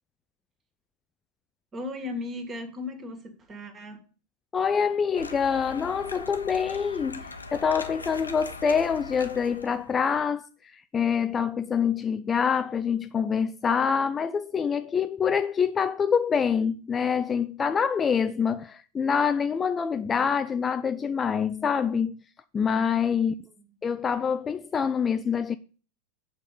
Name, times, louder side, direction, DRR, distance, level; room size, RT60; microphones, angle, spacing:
voice 1, 1.7-4.0 23.2-23.7, left 2 dB, 25° right, 2.0 m, -37 dB
voice 2, 4.5-22.2 22.5-23.3 23.8-25.6, left 6 dB, 20° left, 0.4 m, -26 dB
sound 1, 5.1-10.1, left 3 dB, 75° left, 0.9 m, -41 dB
8.2 x 5.4 x 6.8 m
figure-of-eight pair, 90°, 0 cm